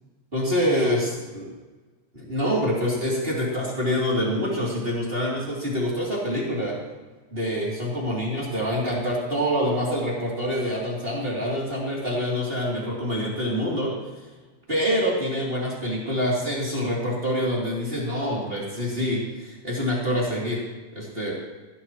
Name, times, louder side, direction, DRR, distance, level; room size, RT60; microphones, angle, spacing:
voice 1, 0.3-1.5 2.1-6.7 7.3-13.9 14.7-20.6 20.9-21.4, equal, 15° right, -5 dB, 2.1 m, -26 dB
16.5 x 14.0 x 3.1 m, 1.3 s
omnidirectional pair, 5.6 m